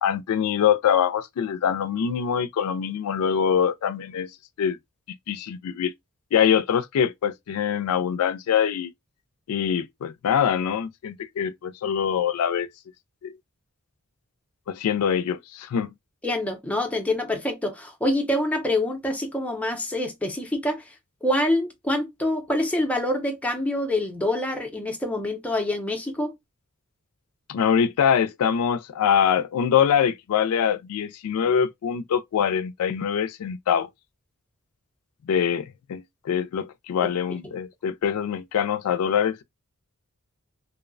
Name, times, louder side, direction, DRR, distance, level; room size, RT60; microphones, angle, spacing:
voice 1, 0.0-4.3 4.6-4.8 5.3-5.9 6.3-8.9 9.5-12.7 13.2-13.3 14.7-15.9 27.5-33.9 35.3-39.4, left 8 dB, 80° left, 0.3 m, -24 dB
voice 2, 16.2-20.8 21.2-26.3 37.0-37.1, left 1 dB, 5° left, 0.5 m, -26 dB
2.6 x 2.0 x 2.5 m
head